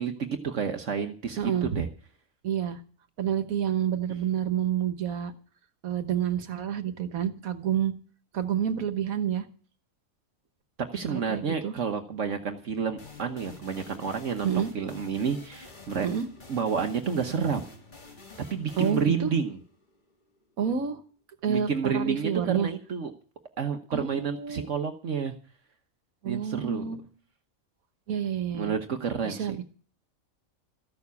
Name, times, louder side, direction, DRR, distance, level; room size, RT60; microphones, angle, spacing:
voice 1, 0.0-1.9 10.9-16.1 16.5-17.7 18.5-19.6 21.5-23.1 23.6-25.3 26.2-26.9 28.5-29.6, right 6 dB, 65° right, 6 dB, 1.4 m, -30 dB
voice 2, 1.4-1.7 2.4-2.8 3.2-5.3 5.8-7.9 8.3-9.4 11.1-11.7 14.4-14.7 16.0-16.3 18.8-19.3 20.6-21.0 21.4-22.7 23.9-24.7 26.2-27.0 28.1-28.7 29.2-29.6, right 8 dB, 90° right, 9 dB, 1.7 m, -28 dB
sound 1, 13.0-20.4, left 3 dB, 35° left, 1.9 m, -49 dB
14.5 x 7.0 x 8.3 m, 0.40 s
omnidirectional pair, 1.4 m